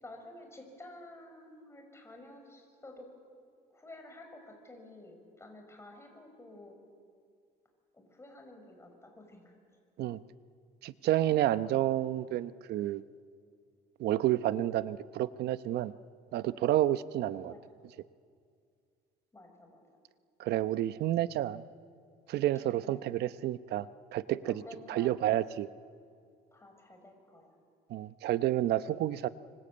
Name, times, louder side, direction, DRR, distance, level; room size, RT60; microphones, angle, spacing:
voice 1, 0.0-3.1 3.7-6.8 7.9-9.5 17.5-17.6 19.3-19.8 22.8-23.1 24.4-25.2 26.5-27.6, left 2 dB, 15° left, 3 dB, 6.1 m, -51 dB
voice 2, 10.8-13.0 14.0-15.9 16.3-17.5 20.4-21.6 22.3-23.9 24.1-24.6 24.9-25.7 27.9-29.3, right 13 dB, 75° right, 14 dB, 0.9 m, -30 dB
25.5 x 24.5 x 8.7 m, 2.2 s
cardioid pair, 110°, 17 cm